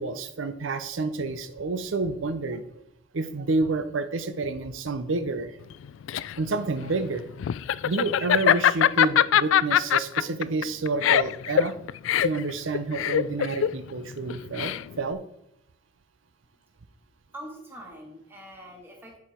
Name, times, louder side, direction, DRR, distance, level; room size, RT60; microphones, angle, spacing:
voice 1, 0.0-2.6 3.1-5.6 6.4-7.2 7.8-11.7 12.2-15.2, right 3 dB, 85° right, 10 dB, 0.6 m, -29 dB
Laughter, 5.7-15.1, left 10 dB, 85° left, 0.3 m, -23 dB
voice 2, 17.3-19.2, right 1 dB, 10° right, -1 dB, 1.9 m, -43 dB
10.5 x 4.8 x 4.4 m, 0.78 s
head